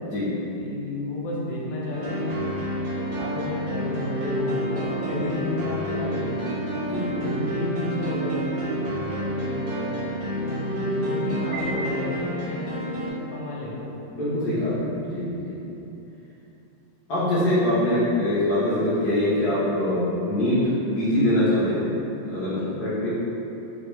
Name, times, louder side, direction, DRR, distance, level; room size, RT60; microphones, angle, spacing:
voice 1, 0.5-2.4 3.1-6.6 7.1-13.9 15.4-15.6 22.5-22.8, left 1 dB, 85° left, -5 dB, 1.3 m, -32 dB
sound 1, 1.9-13.1, right 1 dB, 85° right, 1.4 m, -29 dB
voice 2, 5.0-5.4 6.8-7.3 14.1-15.5 17.1-21.9 22.2-23.1, left 1 dB, 65° left, -12 dB, 1.2 m, -24 dB
Piano, 11.5-12.8, right 1 dB, 70° right, 0.9 m, -35 dB
3.5 x 2.2 x 2.9 m, 2.9 s
omnidirectional pair, 2.1 m